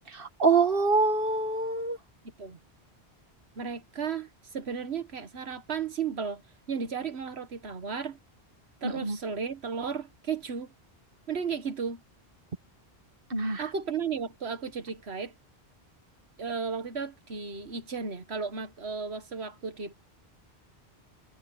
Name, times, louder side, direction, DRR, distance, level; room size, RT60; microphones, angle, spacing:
voice 1, 0.1-2.0 8.8-9.2 13.3-13.6, right 4 dB, 60° right, 1.9 m, -25 dB
voice 2, 3.6-6.4 6.7-8.2 8.8-10.7 11.3-12.0 13.6-15.3 16.4-19.9, right 6 dB, 80° right, 1.6 m, -34 dB
omnidirectional pair, 1.1 m